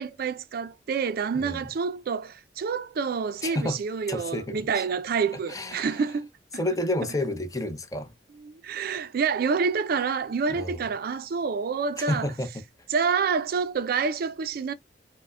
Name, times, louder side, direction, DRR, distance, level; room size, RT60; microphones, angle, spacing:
voice 1, 0.0-6.3 8.4-12.3 12.9-14.7, right 5 dB, 55° right, 0.4 m, -28 dB
voice 2, 3.4-3.8 4.1-4.9 5.5-6.0 6.5-8.1 10.5-10.8 12.0-12.6, left 1 dB, 20° left, 0.6 m, -30 dB
4.7 x 2.1 x 2.3 m
head